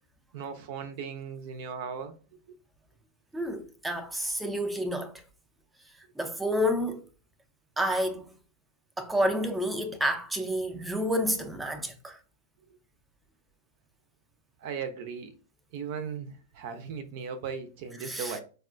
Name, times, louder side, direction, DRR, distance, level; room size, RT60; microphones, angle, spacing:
voice 1, 0.3-2.1 14.6-15.3 15.7-18.4, right 6 dB, 55° right, 0.5 m, -37 dB
voice 2, 3.3-5.1 6.2-7.0 7.8-8.3 9.0-12.2 18.0-18.4, equal, 5° right, 0.5 m, -29 dB
4.0 x 2.2 x 2.5 m
hypercardioid pair, 105°, 0 cm